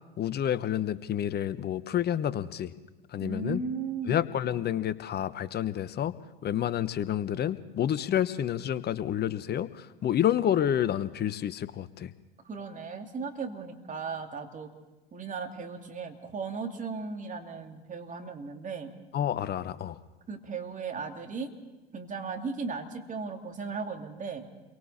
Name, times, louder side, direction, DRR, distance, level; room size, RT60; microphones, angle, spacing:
voice 1, 0.2-2.7 3.1-3.6 4.1-6.1 6.4-12.1 19.1-20.0, left 10 dB, 30° left, 15 dB, 1.0 m, -29 dB
voice 2, 3.2-4.3 12.4-14.7 15.1-18.9 20.3-21.5 21.9-24.5, right 5 dB, 25° right, 4 dB, 2.8 m, -36 dB
30.0 x 23.5 x 4.3 m, 1.1 s
figure-of-eight pair, 80°, 32 cm